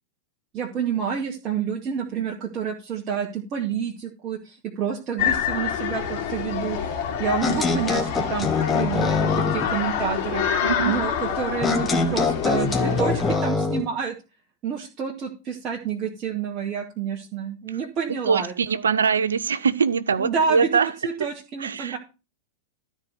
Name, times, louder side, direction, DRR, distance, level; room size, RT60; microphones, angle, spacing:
voice 1, 0.5-6.9 7.2-8.5 8.7-10.4 10.8-14.1 14.6-18.5 20.2-22.0, right 7 dB, 35° right, 2.1 m, -28 dB
sound 1, 5.2-13.4, left 7 dB, 50° left, 2.5 m, -27 dB
sound 2, 7.4-9.7 11.6-13.9, left 4 dB, 15° left, 1.8 m, -24 dB
voice 2, 10.6-11.0 17.7-17.8 18.1-21.3 21.6-22.0, right 6 dB, 70° right, 0.6 m, -23 dB
13.0 x 4.5 x 6.8 m
figure-of-eight pair, 95°, 0 cm